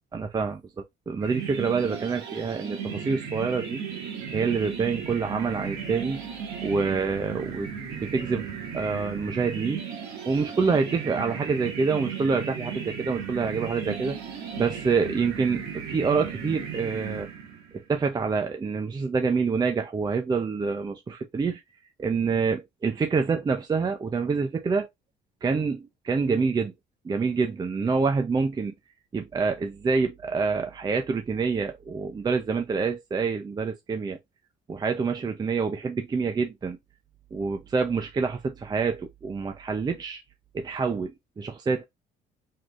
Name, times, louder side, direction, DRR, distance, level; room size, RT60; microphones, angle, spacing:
voice 1, 0.1-3.8 4.3-6.2 6.6-8.5 8.7-9.8 10.3-14.2 14.6-17.3 17.9-21.6 22.0-24.9 25.4-26.7 27.0-28.7 29.1-34.2 34.7-36.8 37.3-40.2 40.5-41.1 41.4-41.8, right 5 dB, 25° right, 0.6 m, -27 dB
sound 1, 1.2-17.8, right 7 dB, 85° right, 1.7 m, -36 dB
4.7 x 3.8 x 2.5 m
cardioid pair, 110°, 17 cm